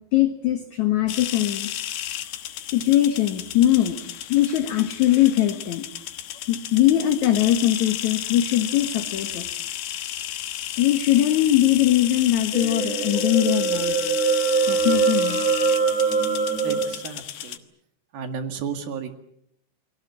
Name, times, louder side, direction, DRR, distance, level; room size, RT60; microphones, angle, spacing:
voice 1, 0.1-1.7 2.7-4.0 4.3-5.9 6.5-9.5 10.8-14.0 14.7-15.4, left 12 dB, 60° left, 7 dB, 2.3 m, -21 dB
sound 1, 1.1-17.6, left 12 dB, 75° left, 3.2 m, -33 dB
sound 2, 12.5-16.8, right 5 dB, 50° right, 7.1 m, -23 dB
voice 2, 16.6-17.6 18.1-19.1, right 6 dB, 70° right, 7 dB, 3.7 m, -33 dB
29.0 x 22.0 x 7.4 m, 0.71 s
omnidirectional pair, 4.5 m